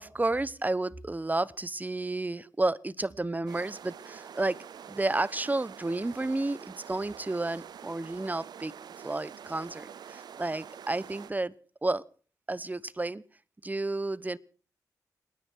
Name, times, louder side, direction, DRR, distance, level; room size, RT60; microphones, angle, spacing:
voice 1, 0.0-4.6 4.9-8.7 9.0-11.5 11.8-12.0 12.5-13.2 13.6-14.4, right 2 dB, 25° right, 20 dB, 0.9 m, -31 dB
sound 1, 3.5-11.3, right 8 dB, 90° right, 0.7 m, -46 dB
28.5 x 10.0 x 4.6 m, 0.41 s
cardioid pair, 50°, 7 cm